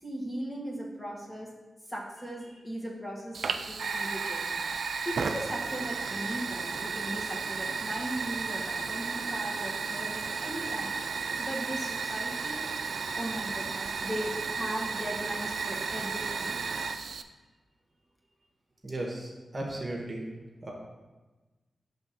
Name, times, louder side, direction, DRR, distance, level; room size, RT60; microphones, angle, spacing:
voice 1, 0.0-1.5 1.9-4.6 5.0-11.0 11.4-16.6, equal, 15° left, -4 dB, 1.5 m, -38 dB
Fire, 3.3-17.2, right 5 dB, 80° right, 0.3 m, -33 dB
voice 2, 18.8-20.2 20.6-20.7, right 1 dB, 35° right, -2 dB, 1.3 m, -35 dB
5.6 x 3.6 x 5.9 m, 1.2 s
cardioid pair, 60°, 0 cm